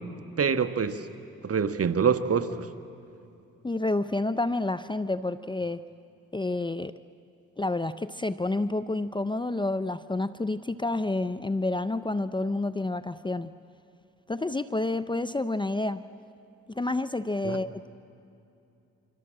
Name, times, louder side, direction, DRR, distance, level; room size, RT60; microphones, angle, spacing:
voice 1, 0.4-1.0 1.4-2.7 17.4-17.6, right 6 dB, 45° right, 10 dB, 1.5 m, -25 dB
voice 2, 3.6-5.8 6.3-6.9 7.6-13.5 14.3-16.0 16.7-17.9, left 2 dB, 15° left, 13 dB, 0.7 m, -29 dB
29.0 x 25.0 x 7.6 m, 2.7 s
supercardioid pair, 60°, 33 cm